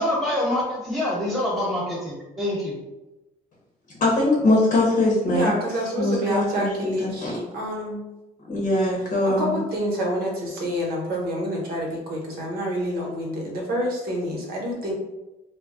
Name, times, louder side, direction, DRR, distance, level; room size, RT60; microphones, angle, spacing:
voice 1, 0.0-2.8, left 1 dB, ahead, -4 dB, 1.1 m, -25 dB
voice 2, 3.9-5.5 6.0-7.3 8.5-9.6, left 2 dB, 45° left, -3 dB, 0.8 m, -22 dB
voice 3, 5.3-8.0 8.9-14.9, equal, 65° right, -1 dB, 0.9 m, -28 dB
2.2 x 2.0 x 3.6 m, 1.0 s
cardioid pair, 110°, 17 cm